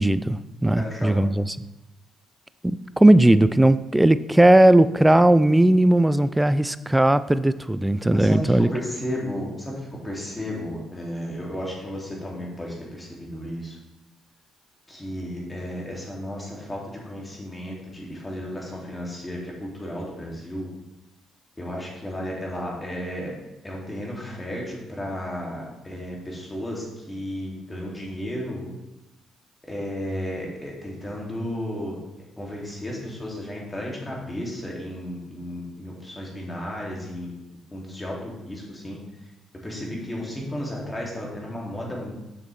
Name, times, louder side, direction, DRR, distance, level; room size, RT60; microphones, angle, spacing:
voice 1, 0.0-1.6 2.6-8.7, right 1 dB, 10° right, 15 dB, 0.3 m, -18 dB
voice 2, 0.7-1.2 8.1-13.8 14.9-20.7 21.6-23.3 23.6-28.6 29.7-32.0 32.4-37.3 37.7-39.0 39.6-42.1, equal, 15° left, -3 dB, 2.3 m, -33 dB
6.9 x 6.5 x 3.2 m, 0.96 s
cardioid pair, 80°, 0 cm